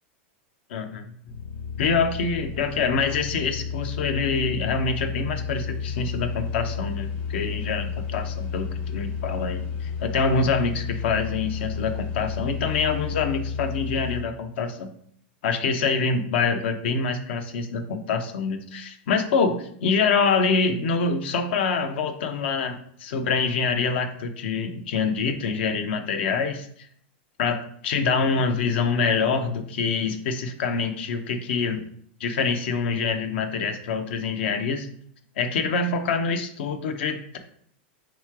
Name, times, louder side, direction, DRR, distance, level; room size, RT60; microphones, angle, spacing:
voice 1, 0.7-1.1 1.8-14.9 15.4-26.7 27.4-31.8 32.2-34.9 35.4-37.4, left 5 dB, 70° left, 7 dB, 0.7 m, -25 dB
sound 1, 1.3-14.2, left 6 dB, 45° left, 1.2 m, -32 dB
3.7 x 3.1 x 4.6 m, 0.63 s
hypercardioid pair, 125°, 6 cm